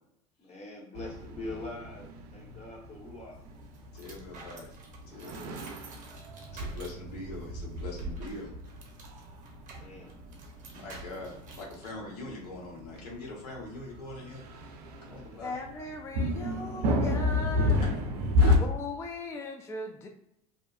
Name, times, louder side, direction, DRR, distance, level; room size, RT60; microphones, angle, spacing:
voice 1, 0.4-3.4 5.1-5.6 9.7-10.2 15.0-15.1, left 2 dB, 35° left, -2 dB, 1.0 m, -43 dB
sound 1, 1.0-18.6, left 2 dB, 75° right, 0.5 m, -32 dB
sound 2, 3.3-11.9, right 2 dB, 40° right, 0.8 m, -45 dB
voice 2, 3.9-4.7 5.1-5.5 6.5-8.5 10.7-14.8 15.1-15.5 18.4-18.6, left 2 dB, 85° left, -3 dB, 1.0 m, -42 dB
voice 3, 15.4-17.8 18.6-20.1, left 2 dB, 15° left, 3 dB, 0.3 m, -38 dB
2.7 x 2.1 x 2.3 m, 0.82 s
hypercardioid pair, 85°, 20 cm